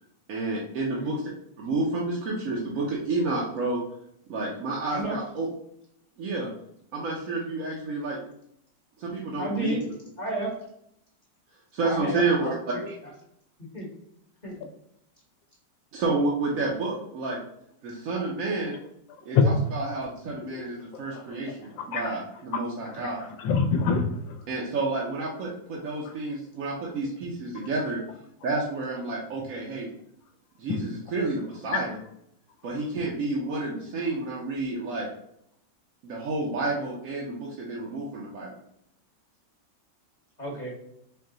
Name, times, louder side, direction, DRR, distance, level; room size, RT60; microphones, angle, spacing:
voice 1, 0.3-1.2 1.6-3.8 4.3-5.5 6.2-6.5 6.9-8.2 9.0-9.9 11.7-12.5 15.9-17.4 17.8-18.8 19.3-23.3 24.5-28.0 28.4-29.9 30.6-32.0 32.6-35.1 36.0-38.5, right 3 dB, 60° right, -4 dB, 0.9 m, -30 dB
voice 2, 9.4-9.8 10.2-10.5 11.8-12.8 13.7-13.9 14.4-14.7 40.4-40.7, right 1 dB, 30° left, -4 dB, 0.9 m, -32 dB
voice 3, 20.9-21.4 21.8-22.1 22.5-22.6 22.9-23.0 23.4-24.4 26.0-26.1 30.7-30.8 31.7-31.8, left 5 dB, 80° left, 4 dB, 1.3 m, -25 dB
4.5 x 2.1 x 3.7 m, 0.74 s
omnidirectional pair, 2.0 m